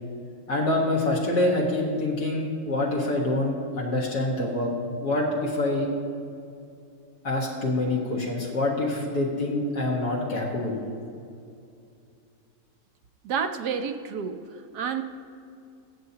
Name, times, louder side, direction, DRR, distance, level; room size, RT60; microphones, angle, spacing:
voice 1, 0.5-4.7 5.0-5.9 7.2-10.8, left 2 dB, 80° left, -3 dB, 2.1 m, -26 dB
voice 2, 13.2-15.0, right 6 dB, 85° right, 8 dB, 1.3 m, -30 dB
22.5 x 8.1 x 2.9 m, 2.5 s
omnidirectional pair, 1.7 m